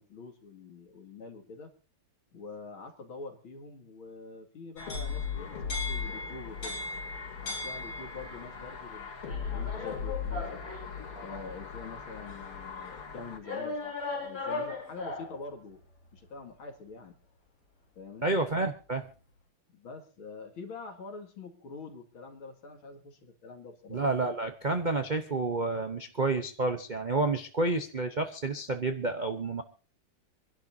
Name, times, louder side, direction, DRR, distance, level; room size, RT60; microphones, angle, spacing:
voice 1, 0.0-1.7 2.3-6.8 7.4-10.6 11.2-15.8 16.1-17.2 18.0-18.4 19.7-24.0, left 4 dB, 70° left, 4 dB, 3.0 m, -45 dB
sound 1, 4.8-13.4, left 6 dB, 90° left, 3.9 m, -39 dB
sound 2, 4.8-8.4 9.2-11.5 12.3-12.4 13.4-15.4, left 3 dB, 40° left, 5.4 m, -38 dB
voice 2, 18.2-19.1 23.9-29.6, right 3 dB, 45° right, 7 dB, 0.6 m, -30 dB
26.5 x 11.5 x 2.7 m, 0.36 s
omnidirectional pair, 2.4 m